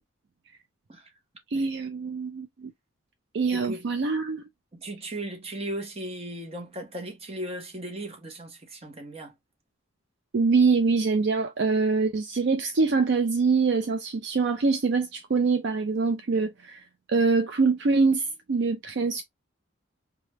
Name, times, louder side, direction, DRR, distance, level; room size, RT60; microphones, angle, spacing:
voice 1, 1.5-2.7 3.3-4.4 10.3-16.8 17.1-19.2, right 4 dB, 55° right, 0.4 m, -24 dB
voice 2, 3.5-3.8 4.7-9.3, right 1 dB, 30° right, 0.9 m, -37 dB
3.3 x 2.3 x 2.9 m
head